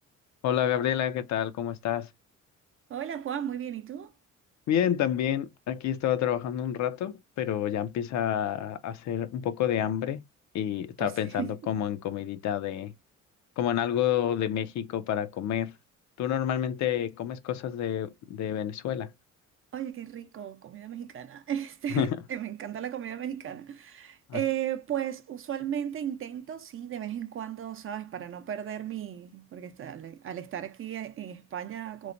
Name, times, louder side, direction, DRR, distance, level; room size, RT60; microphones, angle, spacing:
voice 1, 0.4-2.1 4.7-10.2 10.5-12.9 13.6-15.7 16.2-19.1 21.9-22.2 24.3-24.4, left 10 dB, 70° left, 0.5 m, -29 dB
voice 2, 2.9-4.1 11.0-11.6 19.7-32.1, right 10 dB, 45° right, 0.5 m, -35 dB
3.0 x 2.1 x 2.5 m
cardioid pair, 90°, 30 cm